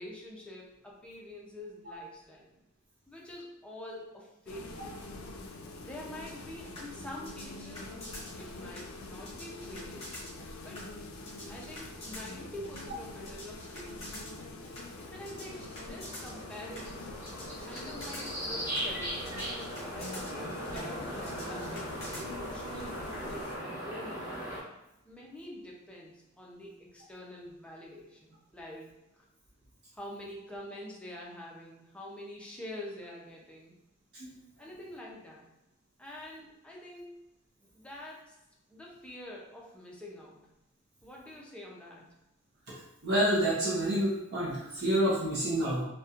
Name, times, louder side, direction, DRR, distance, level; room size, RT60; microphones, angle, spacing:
voice 1, 0.0-2.5 3.1-5.1 5.8-7.9 8.4-10.1 10.6-10.9 11.5-14.2 15.1-17.2 17.6-19.4 19.9-24.4 25.1-29.3 29.9-33.7 34.6-35.5 36.0-37.2 37.6-38.4 38.7-40.5 41.0-42.1, left 1 dB, 5° left, -3 dB, 0.4 m, -46 dB
sound 1, 4.5-23.6, left 2 dB, 75° left, 0.4 m, -45 dB
sound 2, 6.3-22.2, left 1 dB, 30° left, 0.8 m, -47 dB
sound 3, 14.7-24.6, equal, 10° right, 0.8 m, -39 dB
voice 2, 43.0-45.8, right 1 dB, 50° right, -7 dB, 0.6 m, -28 dB
2.8 x 2.1 x 2.4 m, 0.90 s
head